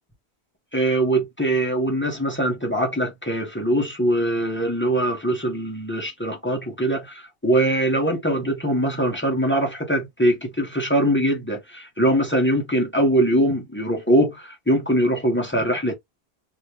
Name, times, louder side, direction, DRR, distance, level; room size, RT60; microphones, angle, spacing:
voice 1, 0.7-15.9, right 1 dB, 10° left, 0.7 m, -22 dB
2.7 x 2.4 x 3.3 m
omnidirectional pair, 1.1 m